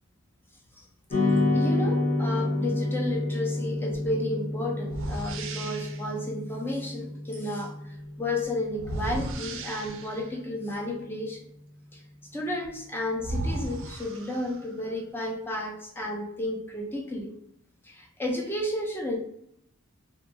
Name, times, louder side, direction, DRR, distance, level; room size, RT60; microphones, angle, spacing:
sound 1, 1.1-9.6, left 2 dB, 40° left, 0.7 m, -29 dB
voice 1, 1.5-7.8 8.2-11.5 11.9-12.0 12.3-17.3 17.8-19.2, left 1 dB, 10° left, 0 dB, 0.4 m, -32 dB
sound 2, 4.9-6.1 8.8-10.3 12.6-12.7 13.2-14.8, right 2 dB, 65° right, 0.4 m, -35 dB
2.7 x 2.3 x 2.5 m, 0.73 s
head